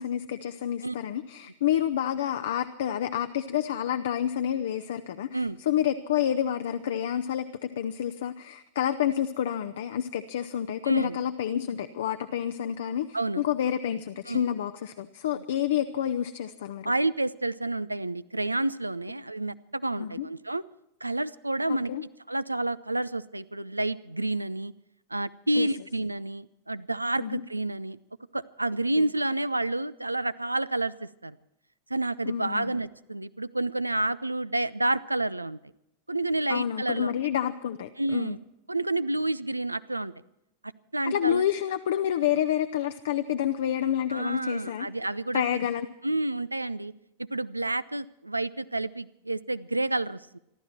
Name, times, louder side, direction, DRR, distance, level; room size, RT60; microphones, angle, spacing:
voice 1, 0.0-5.4 5.7-13.1 13.4-16.9 20.0-20.3 21.7-22.0 25.5-25.7 27.2-27.4 32.3-32.7 36.5-38.4 41.1-44.9 45.3-45.9, left 10 dB, 60° left, 9 dB, 0.7 m, -29 dB
voice 2, 10.9-11.2 13.1-13.4 14.3-14.5 15.3-15.4 16.8-20.6 21.0-21.9 22.3-24.7 25.1-28.0 28.3-31.4 31.9-35.6 36.1-37.2 38.0-38.4 38.7-40.1 40.9-41.4 44.1-45.4 46.0-46.9 47.2-50.4, right 2 dB, 85° right, 18 dB, 0.5 m, -29 dB
26.5 x 12.5 x 4.4 m, 0.84 s
figure-of-eight pair, 90°, 0 cm